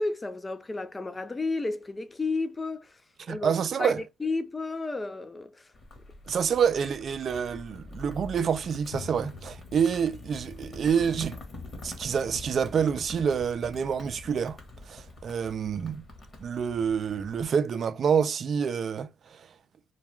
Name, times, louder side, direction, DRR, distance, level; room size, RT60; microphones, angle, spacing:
voice 1, 0.0-3.0 3.3-3.5 3.8-5.5, left 3 dB, 20° left, 0.4 m, -32 dB
voice 2, 3.2-4.0 6.3-11.4 11.8-14.6 14.9-16.0 16.4-19.4, right 7 dB, 55° right, 0.3 m, -27 dB
sound 1, 5.7-17.5, left 2 dB, 35° left, 1.0 m, -45 dB
Drum, 8.9-11.3, left 4 dB, 85° left, 0.5 m, -46 dB
2.3 x 2.2 x 3.0 m
cardioid pair, 90°, 0 cm